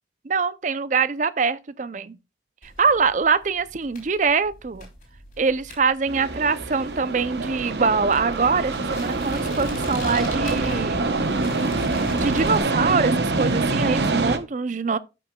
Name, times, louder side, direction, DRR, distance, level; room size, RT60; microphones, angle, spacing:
voice 1, 0.2-2.2 2.6-4.9 5.4-11.2 11.8-15.0, right 5 dB, 45° right, 0.5 m, -24 dB
sound 1, 2.6-12.6, left 1 dB, 45° left, 4.4 m, -39 dB
sound 2, 6.1-14.4, right 3 dB, 70° right, 0.9 m, -25 dB
13.0 x 6.1 x 2.3 m
head